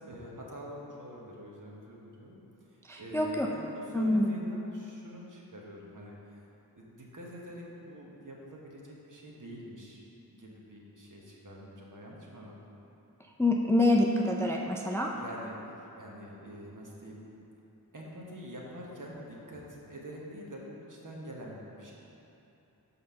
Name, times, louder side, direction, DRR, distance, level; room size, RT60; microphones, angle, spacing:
voice 1, 0.0-2.4 3.0-6.1 6.7-10.0 10.3-12.6 15.1-17.3 17.9-21.9, equal, 50° right, -3 dB, 1.2 m, -45 dB
voice 2, 2.9-3.5 3.9-4.3 13.4-15.1, left 1 dB, 5° left, 0 dB, 0.4 m, -26 dB
5.5 x 3.9 x 5.5 m, 2.9 s
cardioid pair, 45°, 39 cm